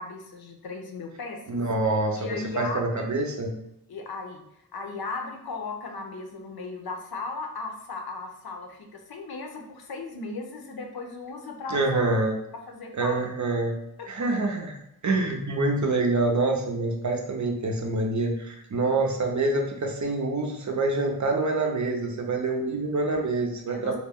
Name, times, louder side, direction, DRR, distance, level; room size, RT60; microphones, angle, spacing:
voice 1, 0.0-1.4 2.2-3.1 3.9-4.4 4.7-12.1 12.7-13.2 14.0-14.1 23.7-24.0, left 3 dB, 75° left, 3 dB, 0.5 m, -36 dB
voice 2, 1.5-2.3 2.6-3.5 11.7-12.4 12.9-13.8 14.1-14.7 15.0-24.0, right 2 dB, 50° right, 2 dB, 0.5 m, -26 dB
2.3 x 2.1 x 3.4 m, 0.79 s
wide cardioid pair, 55°, 37 cm